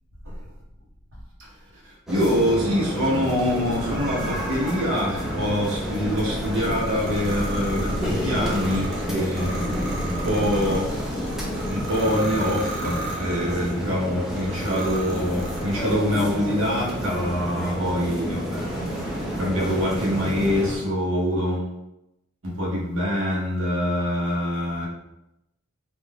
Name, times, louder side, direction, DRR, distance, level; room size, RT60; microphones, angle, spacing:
sound 1, 2.1-20.8, equal, ahead, 0.4 m, -30 dB
voice 1, 2.1-10.9 11.7-18.6 19.4-21.7 22.4-24.9, equal, 70° right, -4 dB, 0.9 m, -25 dB
sound 2, 3.5-13.8 14.4-16.0, right 1 dB, 50° right, 0.6 m, -33 dB
2.5 x 2.3 x 3.3 m, 0.88 s
head